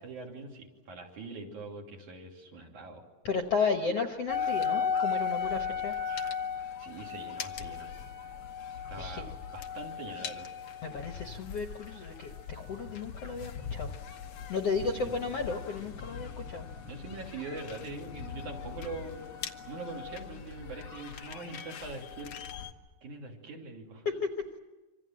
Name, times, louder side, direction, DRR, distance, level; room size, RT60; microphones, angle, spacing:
voice 1, 0.0-3.0 6.8-7.9 8.9-10.5 14.8-15.2 16.9-19.3 19.6-22.3 23.0-24.1, right 3 dB, 55° right, 1 dB, 4.3 m, -43 dB
voice 2, 3.2-5.9 9.0-9.2 10.8-13.9 14.5-16.7 24.0-24.6, left 4 dB, 60° left, 5 dB, 1.7 m, -33 dB
sound 1, 4.3-22.7, left 6 dB, 85° left, 1.1 m, -37 dB
26.5 x 26.0 x 7.6 m, 1.2 s
omnidirectional pair, 4.2 m